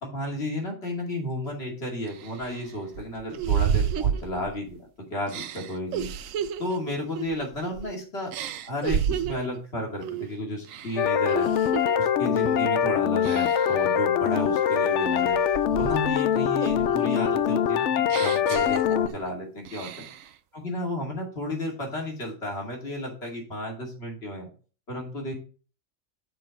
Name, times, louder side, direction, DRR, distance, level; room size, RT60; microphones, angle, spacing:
voice 1, 0.0-6.1 6.6-8.3 8.6-11.5 12.0-15.4 15.8-20.1 20.5-24.5 24.9-25.3, left 1 dB, 50° left, 0 dB, 2.6 m, -33 dB
sound 1, 1.4-1.5 2.1-4.8 5.3-7.9 8.3-9.5 10.0-10.3 10.6-11.9 12.4-12.7 13.2-13.8 14.3-16.2 16.6-19.3 19.6-20.3, right 9 dB, 75° right, 1.0 m, -31 dB
sound 2, 11.0-19.1, left 9 dB, 65° left, 0.8 m, -23 dB
6.8 x 4.5 x 6.3 m, 0.39 s
omnidirectional pair, 1.4 m